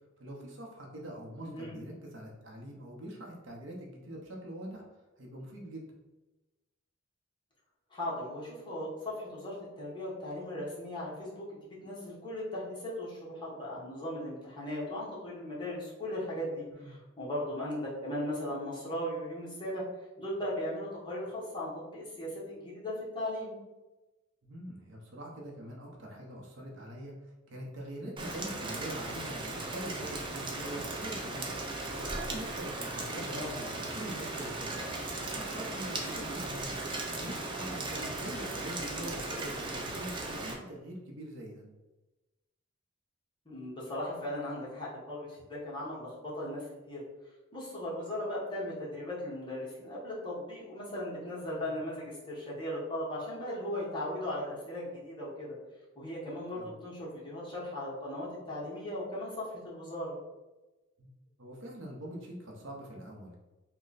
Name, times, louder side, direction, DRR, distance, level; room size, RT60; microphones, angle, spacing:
voice 1, 0.2-4.8 5.2-5.9 16.7-17.0 24.4-27.1 27.5-31.6 32.0-34.8 35.1-36.8 37.2-41.6 51.5-51.7 56.5-56.8 61.0-61.1 61.4-63.4, right 1 dB, 65° right, -1 dB, 0.7 m, -44 dB
voice 2, 1.4-1.8 7.9-23.5 33.1-33.5 38.7-39.1 43.4-47.0 47.5-55.5 56.0-60.2, left 1 dB, 25° left, -6 dB, 1.1 m, -38 dB
Rain, 28.2-40.5, right 2 dB, 25° right, 0.4 m, -37 dB
3.1 x 2.2 x 3.9 m, 1.1 s
head